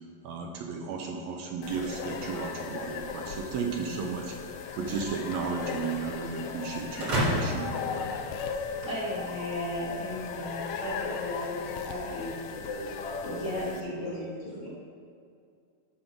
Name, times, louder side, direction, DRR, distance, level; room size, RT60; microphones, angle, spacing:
voice 1, 0.2-4.3 4.7-8.1, right 5 dB, 75° right, 2 dB, 1.8 m, -34 dB
sound 1, 1.6-13.8, left 6 dB, 85° left, 1.4 m, -37 dB
sound 2, 7.0-8.9, equal, 45° right, 2.2 m, -30 dB
voice 2, 8.8-12.3 13.2-14.7, left 1 dB, 35° left, -8 dB, 1.4 m, -35 dB
voice 3, 12.5-14.2 14.4-14.7, left 1 dB, 55° left, -5 dB, 2.6 m, -38 dB
10.5 x 3.9 x 6.0 m, 2.4 s
omnidirectional pair, 3.4 m